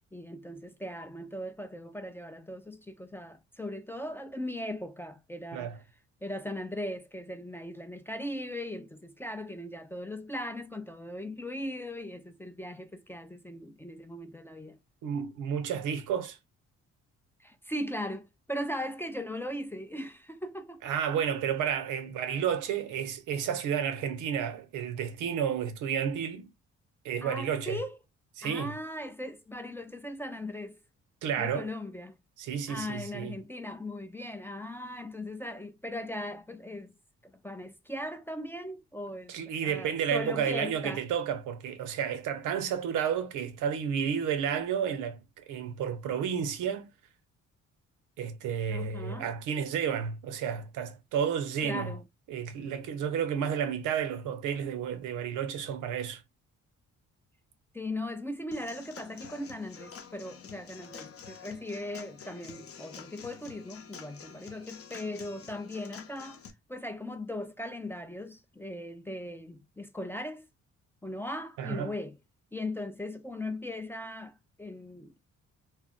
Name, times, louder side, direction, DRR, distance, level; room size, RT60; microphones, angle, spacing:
voice 1, 0.1-5.8 6.2-14.8 17.4-20.8 27.2-28.0 28.4-30.8 31.4-32.2 32.7-37.0 37.2-39.3 39.6-41.0 48.7-49.3 51.6-52.0 57.7-66.4 66.7-70.5 71.0-72.1 72.5-75.3, left 1 dB, 10° left, 0.3 m, -38 dB
voice 2, 15.0-16.4 20.8-26.5 27.0-27.8 28.4-28.7 31.2-31.7 32.4-33.4 39.3-46.9 48.2-52.0 52.3-56.2 71.6-71.9, right 8 dB, 85° right, 0.6 m, -31 dB
Human voice / Acoustic guitar / Drum, 58.5-66.5, left 6 dB, 50° left, 0.7 m, -48 dB
2.3 x 2.0 x 3.7 m
cardioid pair, 90°, 30 cm